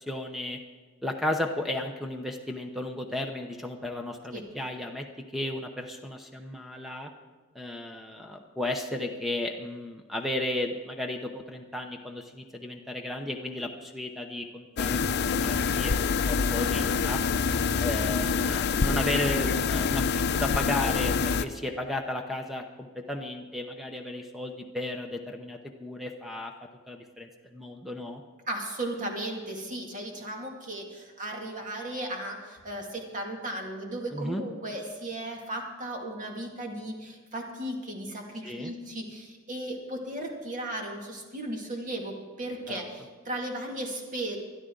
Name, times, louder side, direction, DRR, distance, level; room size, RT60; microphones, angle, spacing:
voice 1, 0.1-0.6 1.0-5.0 5.3-7.1 7.5-17.2 17.8-26.5 26.9-28.2 34.1-34.4 38.4-38.7 42.7-42.8, left 1 dB, ahead, 4 dB, 0.8 m, -34 dB
sound 1, 14.8-21.4, left 5 dB, 55° left, 0.5 m, -26 dB
voice 2, 28.5-44.4, right 1 dB, 40° right, 1 dB, 2.3 m, -36 dB
21.0 x 12.5 x 3.9 m, 1.3 s
head